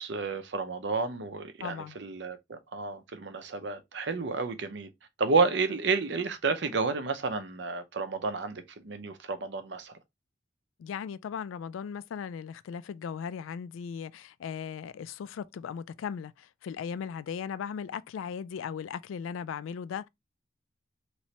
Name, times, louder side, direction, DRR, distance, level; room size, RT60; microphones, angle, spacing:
voice 1, 0.0-4.9 5.2-9.9, right 4 dB, 65° right, 0.6 m, -31 dB
voice 2, 1.6-2.0 10.8-20.1, left 7 dB, 85° left, 0.3 m, -37 dB
3.2 x 3.0 x 2.8 m
head